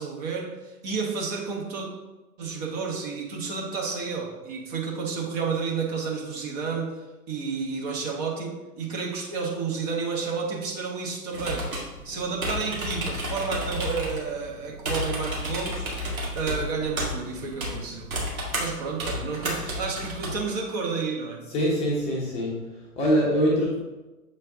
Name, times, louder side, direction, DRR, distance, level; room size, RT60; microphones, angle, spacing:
voice 1, 0.0-1.9 2.4-7.0 7.3-11.7 12.0-18.1 18.6-21.4, right 5 dB, 25° right, -1 dB, 1.0 m, -31 dB
sound 1, 11.3-20.4, equal, 65° right, 2.3 m, -32 dB
voice 2, 21.5-23.8, equal, 15° left, -4 dB, 0.8 m, -24 dB
7.4 x 4.4 x 3.6 m, 1.1 s
figure-of-eight pair, 120°, 46 cm